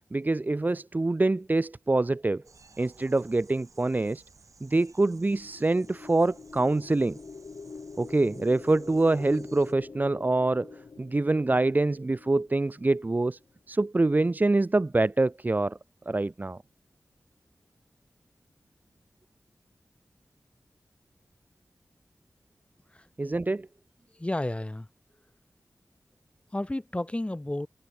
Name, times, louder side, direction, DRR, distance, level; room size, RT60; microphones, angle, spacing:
voice 1, 0.1-2.4 2.8-4.2 4.6-7.2 8.0-10.7 11.0-13.4 13.7-15.8 16.1-16.6 23.2-23.7, right 2 dB, 30° right, 0.6 m, -25 dB
sound 1, 2.4-9.7, right 4 dB, 70° right, 4.2 m, -57 dB
sound 2, 5.2-13.4, left 4 dB, 70° left, 6.9 m, -46 dB
voice 2, 22.9-23.4 24.1-24.9 26.5-27.7, left 1 dB, 20° left, 2.0 m, -32 dB
wide cardioid pair, 60°, 6 cm